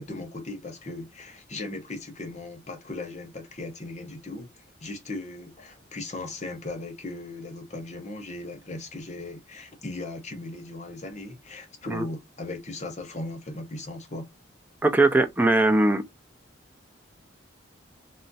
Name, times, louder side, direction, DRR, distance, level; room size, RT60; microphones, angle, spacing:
voice 1, 0.0-4.5 4.8-14.3, left 2 dB, 35° left, 0.8 m, -37 dB
voice 2, 14.8-16.0, right 2 dB, 10° right, 0.4 m, -20 dB
2.4 x 2.0 x 3.9 m
head